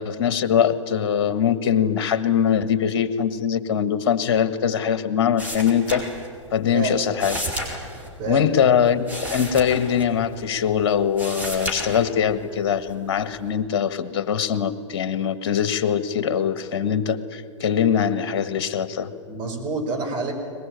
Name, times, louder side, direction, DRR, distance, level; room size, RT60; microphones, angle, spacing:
voice 1, 0.0-6.0 6.5-7.4 8.3-19.1, left 8 dB, 50° left, 13 dB, 1.5 m, -22 dB
sound 1, 5.4-6.6 6.8-10.6 11.0-12.4 12.9-13.5, equal, 10° right, 4.9 m, -32 dB
voice 2, 19.3-20.3, right 3 dB, 30° right, 1 dB, 5.5 m, -28 dB
22.5 x 20.5 x 9.2 m, 2.3 s
figure-of-eight pair, 105°, 16 cm